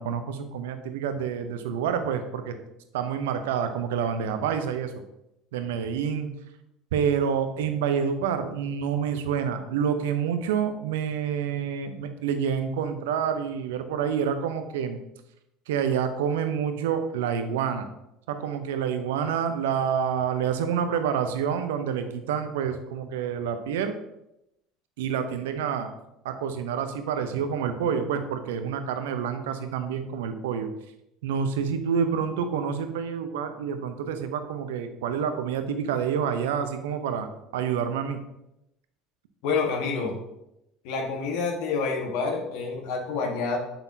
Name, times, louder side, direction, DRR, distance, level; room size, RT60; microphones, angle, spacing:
voice 1, 0.0-2.6 2.9-4.9 5.5-6.3 6.9-15.0 15.7-17.9 18.3-24.0 25.0-25.9 26.2-30.7 31.2-37.3 37.5-38.2, right 7 dB, 75° right, 9 dB, 0.7 m, -28 dB
voice 2, 39.4-40.1 40.8-43.6, left 4 dB, 65° left, 1 dB, 1.4 m, -28 dB
6.9 x 5.8 x 2.8 m, 0.86 s
hypercardioid pair, 70°, 0 cm